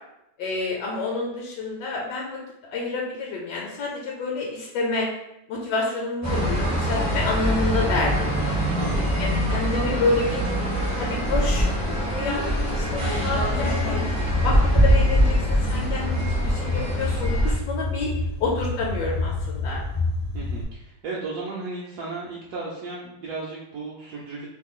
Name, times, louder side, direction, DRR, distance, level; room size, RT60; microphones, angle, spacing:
voice 1, 0.4-2.4 2.7-5.1 5.5-8.6 9.2-10.4 11.0-18.1 18.4-19.8, left 3 dB, 75° left, -2 dB, 1.1 m, -28 dB
sound 1, 6.2-17.5, equal, 25° right, 0.3 m, -23 dB
voice 2, 8.7-9.6 20.3-24.5, right 3 dB, 70° right, -4 dB, 1.0 m, -35 dB
sound 2, 12.8-20.6, left 3 dB, 55° left, 0.6 m, -29 dB
3.0 x 2.2 x 3.6 m, 0.86 s
omnidirectional pair, 1.9 m